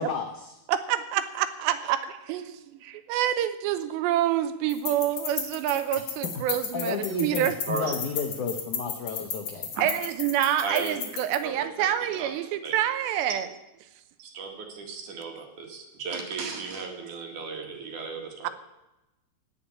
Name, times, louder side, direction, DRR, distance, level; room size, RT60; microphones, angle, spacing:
voice 1, 0.0-0.6 6.2-6.3 6.7-9.7, left 6 dB, 80° left, 4 dB, 1.7 m, -32 dB
voice 2, 0.7-2.0 2.3-2.6 2.8-7.5 9.8-13.5 18.4-18.5, right 11 dB, 85° right, 11 dB, 3.0 m, -27 dB
sound 1, 4.7-11.4, left 6 dB, 55° left, 1.9 m, -34 dB
voice 3, 10.6-10.9 11.4-11.9 12.1-12.3 12.6-12.8 14.2-18.5, right 4 dB, 55° right, 3 dB, 2.8 m, -35 dB
17.0 x 5.8 x 9.8 m, 0.94 s
omnidirectional pair, 5.1 m